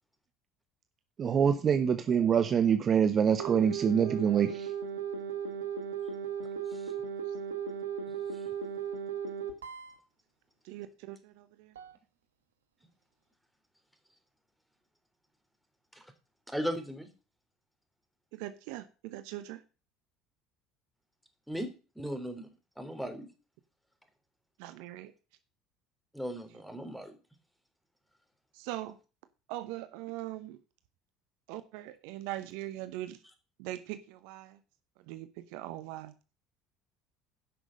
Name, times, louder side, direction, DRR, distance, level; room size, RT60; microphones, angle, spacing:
voice 1, 1.2-4.7, right 7 dB, 40° right, 1.0 m, -25 dB
sound 1, 3.4-10.0 11.8-11.9, right 7 dB, 85° right, 1.3 m, -36 dB
voice 2, 10.6-11.7 18.3-19.6 24.6-25.1 26.5-26.6 28.5-29.0 29.5-30.6 31.5-33.2 33.6-34.6 35.1-36.1, right 15 dB, 70° right, 0.8 m, -41 dB
voice 3, 16.5-17.1 21.5-21.7 21.9-22.5 22.8-23.3 26.1-27.1, equal, ahead, 3.2 m, -36 dB
10.5 x 6.3 x 6.4 m
hypercardioid pair, 65°, 0 cm